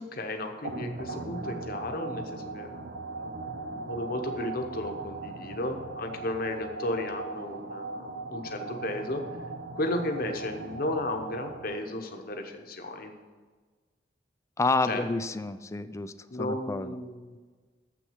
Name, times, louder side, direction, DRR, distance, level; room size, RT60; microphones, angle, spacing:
voice 1, 0.0-2.7 3.2-9.2 9.7-13.1 14.8-15.0 16.3-17.4, left 1 dB, 55° left, 4 dB, 1.0 m, -34 dB
sound 1, 0.6-12.0, right 3 dB, 60° right, 0.8 m, -39 dB
voice 2, 14.6-16.1 16.4-17.0, left 3 dB, 15° left, 12 dB, 0.4 m, -29 dB
7.8 x 6.2 x 7.9 m, 1.4 s
head